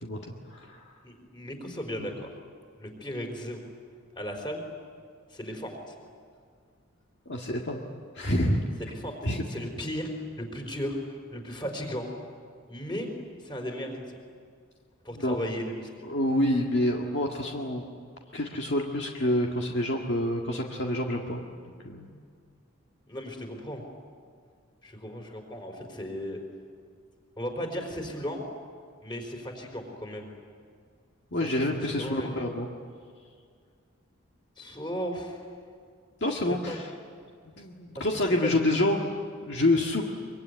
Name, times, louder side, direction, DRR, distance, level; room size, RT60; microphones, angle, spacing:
voice 1, 0.0-0.9 7.3-7.9 8.1-8.6 9.2-9.4 15.1-15.4 16.0-17.8 18.3-22.1 31.3-32.7 36.2-36.9 37.6-39.1 39.5-40.0, left 1 dB, 55° left, 0 dB, 1.9 m, -27 dB
voice 2, 1.0-2.3 2.8-3.6 4.1-4.7 5.3-5.9 8.8-10.1 10.4-12.1 12.7-13.1 13.4-14.1 15.0-15.8 23.1-23.8 24.8-26.4 27.4-28.4 29.0-30.3 31.6-32.5 34.6-35.4 36.3-36.8 38.4-38.7, equal, 20° left, 3 dB, 4.2 m, -36 dB
24.5 x 24.0 x 9.6 m, 2.1 s
head